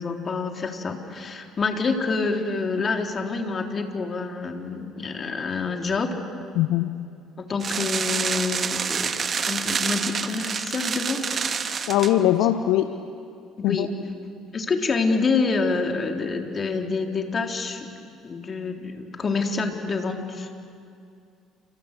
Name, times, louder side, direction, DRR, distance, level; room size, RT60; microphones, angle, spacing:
voice 1, 0.0-6.1 7.4-9.1 9.4-11.9 12.4-12.5 13.6-13.9 14.5-17.9 18.2-20.5, left 4 dB, 40° left, 3 dB, 3.4 m, -27 dB
voice 2, 6.5-6.9 11.9-12.9 13.6-13.9, left 13 dB, 65° left, 9 dB, 0.8 m, -21 dB
sound 1, 7.6-12.1, right 6 dB, 40° right, 1.5 m, -27 dB
28.5 x 27.0 x 6.7 m, 2.4 s
hypercardioid pair, 55°, 0 cm